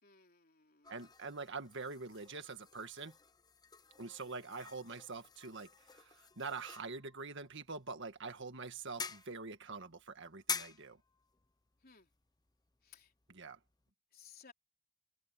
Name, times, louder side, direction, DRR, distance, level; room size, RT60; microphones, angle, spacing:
voice 1, 0.0-1.1 11.8-12.1 12.8-13.1 14.1-14.5, left 7 dB, 40° left, 3.8 m, -60 dB
sound 1, 0.8-13.9, left 6 dB, 15° left, 0.9 m, -49 dB
voice 2, 0.9-3.2 4.0-11.0 13.3-13.6, right 4 dB, 55° right, 1.9 m, -45 dB
head